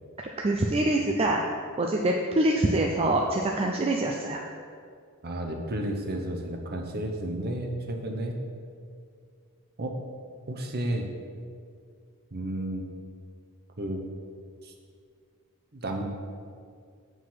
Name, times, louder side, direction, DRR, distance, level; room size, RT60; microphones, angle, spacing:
voice 1, 0.2-1.4 1.8-4.4, right 1 dB, 25° right, 1 dB, 0.4 m, -25 dB
voice 2, 5.2-8.4 9.8-10.0 10.5-11.1 12.3-12.9 13.8-14.0 14.6-14.7 15.7-16.0, right 1 dB, 45° right, 3 dB, 0.9 m, -32 dB
7.9 x 4.9 x 5.7 m, 2.2 s
head